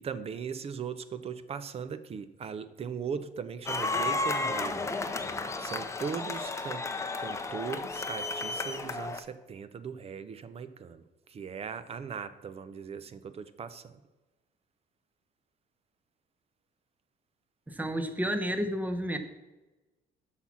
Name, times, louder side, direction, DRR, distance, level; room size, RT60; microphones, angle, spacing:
voice 1, 0.0-5.0 5.6-6.9 7.2-14.0, right 6 dB, 35° right, 0.6 m, -39 dB
sound 1, 3.7-9.2, left 3 dB, 15° left, 0.7 m, -33 dB
voice 2, 17.7-19.2, equal, 10° right, 0.9 m, -31 dB
8.1 x 5.8 x 6.1 m
cardioid pair, 110°, 17 cm